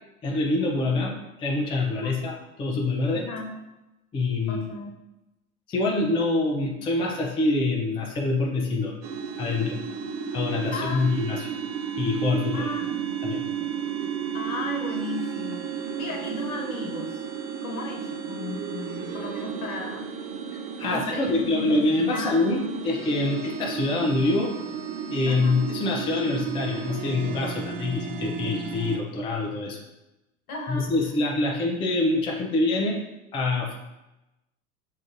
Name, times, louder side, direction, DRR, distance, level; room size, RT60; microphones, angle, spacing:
voice 1, 0.2-1.1 1.4-3.2 4.1-4.6 5.7-8.9 9.4-9.8 10.3-11.5 12.0-12.7 13.2-13.4 20.8-24.5 25.1-29.8 30.7-33.0 33.3-33.8, left 2 dB, 10° left, -1 dB, 0.4 m, -25 dB
voice 2, 3.1-3.5 4.5-4.9 10.7-11.1 12.5-13.0 14.3-17.2 17.6-20.1 20.8-21.8 22.1-22.6 25.2-25.6 30.5-30.9, left 3 dB, 70° left, 0 dB, 1.2 m, -35 dB
sound 1, 9.0-29.0, right 7 dB, 55° right, 0.6 m, -33 dB
6.2 x 2.5 x 2.5 m, 0.98 s
hypercardioid pair, 85°, 44 cm